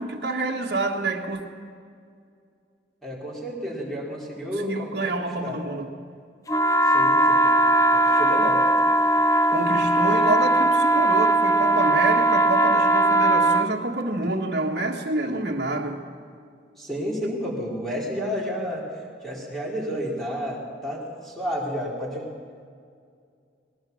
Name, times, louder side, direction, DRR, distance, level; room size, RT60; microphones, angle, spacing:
voice 1, 0.0-1.4 4.5-5.9 9.5-16.0, right 2 dB, 60° right, -2 dB, 1.7 m, -27 dB
voice 2, 3.0-5.1 5.4-5.6 6.9-7.5 7.9-8.6 16.8-18.8 19.2-22.3, equal, ahead, -5 dB, 4.4 m, -31 dB
sound 1, 6.5-13.7, right 1 dB, 20° left, 0.5 m, -19 dB
20.5 x 18.5 x 7.3 m, 2.2 s
head